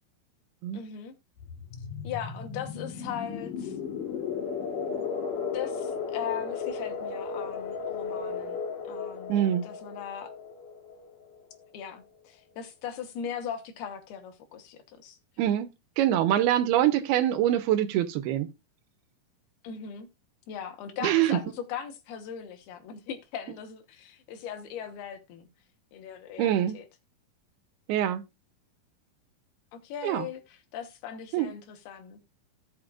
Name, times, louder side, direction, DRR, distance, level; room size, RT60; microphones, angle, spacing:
voice 1, 0.7-1.1 2.0-3.8 5.5-8.6 8.9-9.4 9.6-10.3 11.7-15.2 19.6-20.1 20.5-25.5 25.9-26.9 29.7-32.2, left 8 dB, 85° left, 3.3 m, -39 dB
sound 1, 1.4-11.9, left 6 dB, 60° left, 3.5 m, -35 dB
voice 2, 9.3-9.6 15.4-15.7 16.0-18.5 21.0-21.4 26.4-26.8 27.9-28.2 30.0-30.3 31.3-31.5, right 12 dB, 85° right, 2.9 m, -24 dB
16.5 x 5.8 x 2.4 m
omnidirectional pair, 4.4 m